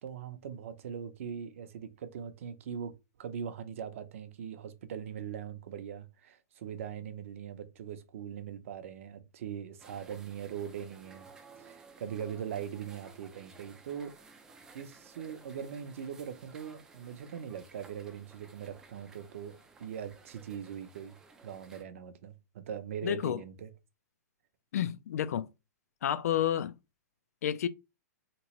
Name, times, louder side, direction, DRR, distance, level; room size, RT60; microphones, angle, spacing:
voice 1, 0.0-2.9 3.2-11.3 11.6-14.1 14.7-21.1 21.4-23.7, right 8 dB, 50° right, 0.6 m, -41 dB
sound 1, 9.8-21.8, right 4 dB, 5° right, 0.3 m, -56 dB
voice 2, 23.0-23.4 24.7-25.5 26.0-26.7 27.4-27.7, left 10 dB, 65° left, 0.4 m, -30 dB
3.5 x 3.0 x 3.0 m
hypercardioid pair, 170°, 9 cm